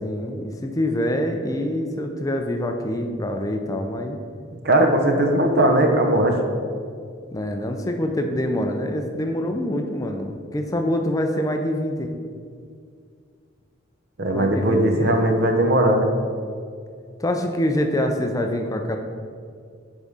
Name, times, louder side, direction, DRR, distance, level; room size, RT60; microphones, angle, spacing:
voice 1, 0.0-4.2 7.3-12.1 14.3-15.4 17.2-19.0, left 1 dB, 15° left, 4 dB, 0.4 m, -25 dB
voice 2, 4.6-6.4 14.2-16.1, right 1 dB, 50° right, 4 dB, 0.8 m, -18 dB
8.0 x 3.7 x 5.5 m, 2.2 s
head